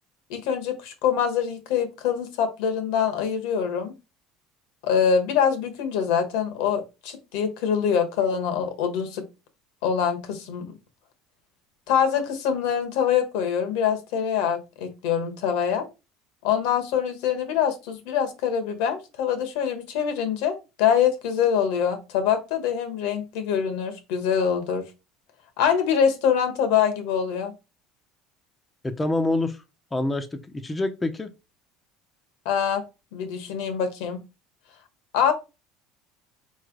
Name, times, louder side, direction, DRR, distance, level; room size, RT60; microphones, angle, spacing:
voice 1, 0.3-3.9 4.8-9.2 9.8-10.7 11.9-15.9 16.4-24.8 25.6-27.5 32.4-32.8 33.1-34.2 35.1-35.3, left 8 dB, 75° left, 1.2 m, -24 dB
voice 2, 28.8-29.6 29.9-31.3, left 2 dB, 15° left, 0.6 m, -26 dB
4.2 x 3.2 x 3.8 m
supercardioid pair, 95°, 0 cm